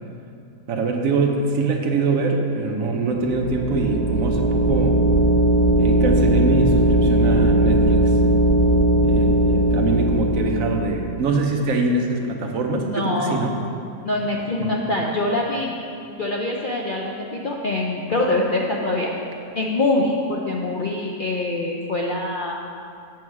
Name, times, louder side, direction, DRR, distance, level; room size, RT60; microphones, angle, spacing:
voice 1, 0.7-5.0 5.8-8.2 9.0-13.5 14.6-14.8, right 3 dB, 65° right, 2 dB, 1.1 m, -23 dB
sound 1, 3.1-10.9, right 1 dB, 90° right, 1.4 m, -18 dB
voice 2, 12.7-13.4 14.0-15.7 16.2-19.1 19.6-22.5, left 2 dB, 55° left, -2 dB, 0.5 m, -24 dB
7.7 x 7.2 x 4.7 m, 2.5 s
omnidirectional pair, 1.6 m